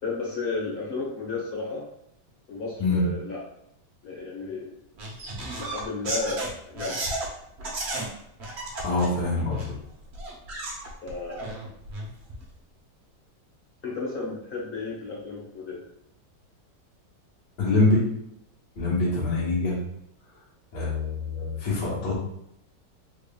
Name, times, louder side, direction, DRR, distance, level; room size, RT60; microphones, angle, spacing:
voice 1, 0.0-1.9 2.5-3.4 4.0-4.7 5.6-7.1 11.0-11.5 13.8-15.8, left 3 dB, 35° left, -4 dB, 1.0 m, -33 dB
sound 1, 5.0-7.3 7.6-8.1 8.4-9.7 10.1-12.4, right 2 dB, 50° right, 0.8 m, -33 dB
voice 2, 8.8-9.7 17.6-18.1 18.8-19.8 20.7-22.1, left 3 dB, 75° left, -7 dB, 1.8 m, -24 dB
3.8 x 3.4 x 2.2 m, 0.76 s
omnidirectional pair, 1.9 m